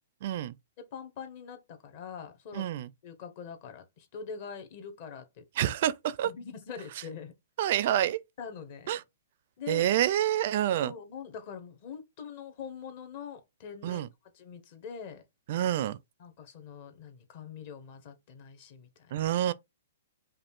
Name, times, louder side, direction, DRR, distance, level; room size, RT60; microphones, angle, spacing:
voice 1, 0.2-0.5 2.5-2.9 5.6-6.3 7.6-8.2 8.9-9.0 9.7-10.9 13.8-14.1 15.5-16.0 19.1-19.5, right 12 dB, 50° right, 0.4 m, -27 dB
voice 2, 0.8-2.7 3.0-5.7 6.2-7.3 8.1-9.0 9.6-9.9 10.7-14.1 14.3-15.2 16.2-19.2, left 6 dB, 40° left, 1.2 m, -44 dB
5.1 x 2.4 x 3.6 m
hypercardioid pair, 155°, 0 cm